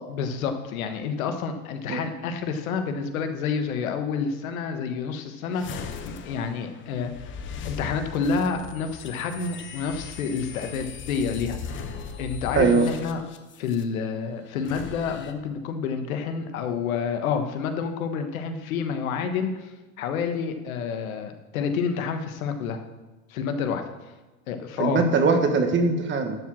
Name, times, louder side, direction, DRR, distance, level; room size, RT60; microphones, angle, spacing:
voice 1, 0.1-7.3 7.6-13.2 13.6-22.8 23.3-23.8 24.5-25.1, left 6 dB, 85° left, 7 dB, 1.4 m, -29 dB
sound 1, 5.5-13.8 14.5-15.3, left 6 dB, 30° left, 0.9 m, -38 dB
voice 2, 12.5-12.9 24.8-26.4, right 4 dB, 30° right, 6 dB, 1.4 m, -21 dB
11.5 x 4.8 x 7.5 m, 1.2 s
supercardioid pair, 125°, 41 cm